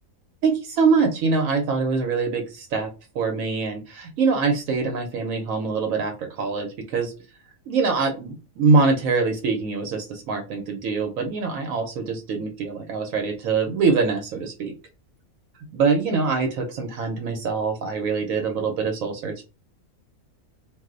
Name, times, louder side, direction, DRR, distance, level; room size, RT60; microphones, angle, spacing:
voice 1, 0.4-7.1 7.7-14.7 15.7-19.4, right 4 dB, 75° right, 4 dB, 1.0 m, -24 dB
2.5 x 2.0 x 3.6 m, 0.30 s
omnidirectional pair, 1.4 m